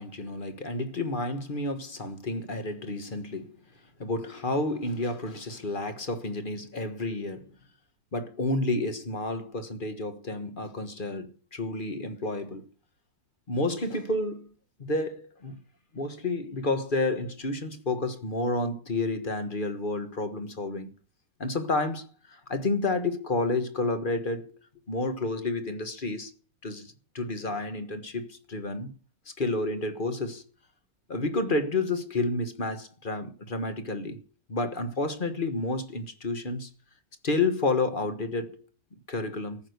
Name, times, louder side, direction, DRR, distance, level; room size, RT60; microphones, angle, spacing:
voice 1, 0.0-3.6 4.0-7.5 8.1-12.6 13.5-14.5 14.8-15.6 15.9-20.9 21.4-24.5 24.9-26.3 26.6-28.9 29.4-30.4 31.1-34.2 34.5-36.7 37.2-38.6 39.1-39.6, left 2 dB, 30° left, 1.4 m, -30 dB
14.0 x 6.5 x 8.0 m
omnidirectional pair, 1.9 m